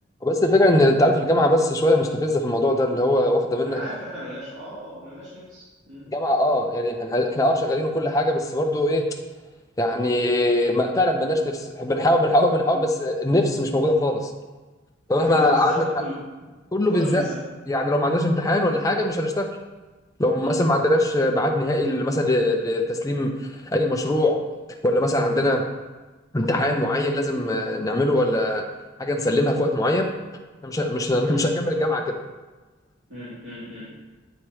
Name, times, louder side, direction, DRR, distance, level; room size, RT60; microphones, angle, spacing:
voice 1, 0.2-3.8 6.1-9.0 9.8-14.2 15.1-15.8 16.7-17.2 17.7-19.5 20.2-23.3 23.7-24.4 24.8-25.6 26.3-28.6 29.0-30.1 30.6-32.1, left 1 dB, 15° left, 2 dB, 0.5 m, -21 dB
voice 2, 3.6-6.1 12.7-12.9 15.1-16.2 16.9-17.4 20.4-20.6 31.3-31.5 33.1-33.9, equal, 80° right, -12 dB, 2.1 m, -36 dB
8.6 x 3.0 x 4.8 m, 1.2 s
head